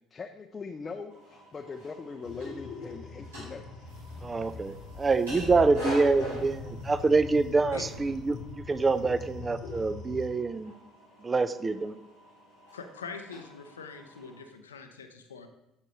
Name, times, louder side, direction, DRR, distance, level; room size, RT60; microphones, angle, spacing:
voice 1, 0.1-3.8, left 4 dB, 30° left, 6 dB, 0.5 m, -41 dB
sound 1, 1.1-14.4, equal, 85° right, 3.0 m, -45 dB
sound 2, 2.2-10.3, left 4 dB, 60° left, 0.8 m, -42 dB
sound 3, 3.9-9.4, left 2 dB, 70° right, 1.7 m, -49 dB
voice 2, 4.2-10.7 11.2-12.0, right 3 dB, 25° right, 13 dB, 0.4 m, -26 dB
voice 3, 12.7-15.5, left 5 dB, 85° left, 7 dB, 0.5 m, -43 dB
8.3 x 6.5 x 3.1 m, 0.86 s
hypercardioid pair, 60°, 0 cm